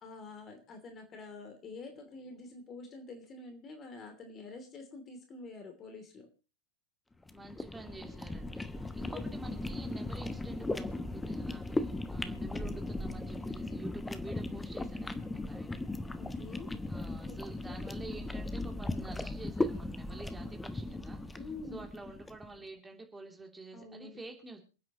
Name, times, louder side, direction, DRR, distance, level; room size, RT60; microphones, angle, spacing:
voice 1, 0.0-6.3 9.1-9.2 16.2-16.7 17.3-17.5 21.3-21.9 23.7-24.2, left 3 dB, 25° left, 5 dB, 3.0 m, -47 dB
sound 1, 7.2-22.5, left 2 dB, 10° left, 1.0 m, -37 dB
voice 2, 7.3-15.8 16.8-21.4 21.7-24.6, right 3 dB, 10° right, 2 dB, 3.0 m, -48 dB
28.0 x 9.4 x 3.0 m, 0.34 s
figure-of-eight pair, 90°, 0 cm